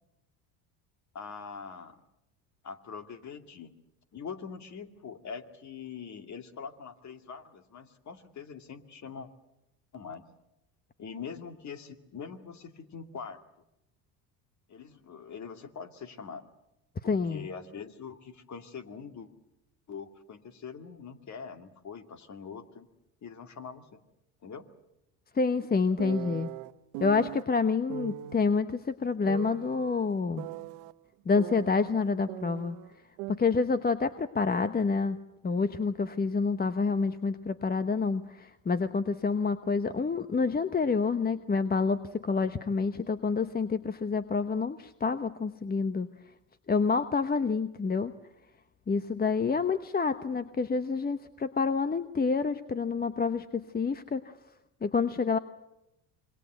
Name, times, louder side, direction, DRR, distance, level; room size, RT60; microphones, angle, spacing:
voice 1, 1.1-2.0 2.6-3.7 4.1-9.3 9.9-10.2 11.0-13.4 14.7-16.5 17.0-19.3 19.9-22.9 23.2-24.0 24.4-24.7, left 6 dB, 40° left, 7 dB, 2.4 m, -43 dB
voice 2, 17.1-17.5 25.3-26.5 27.0-30.5 31.3-32.8 33.3-35.2 35.4-46.1 46.7-48.1 48.9-54.3 54.8-55.4, left 4 dB, 20° left, 11 dB, 1.0 m, -28 dB
sound 1, 26.0-27.4 27.9-28.4 29.3-30.9 31.4-32.9 33.2-33.3, right 17 dB, 75° right, 1.0 m, -40 dB
26.5 x 22.0 x 8.0 m, 0.87 s
supercardioid pair, 80°, 42 cm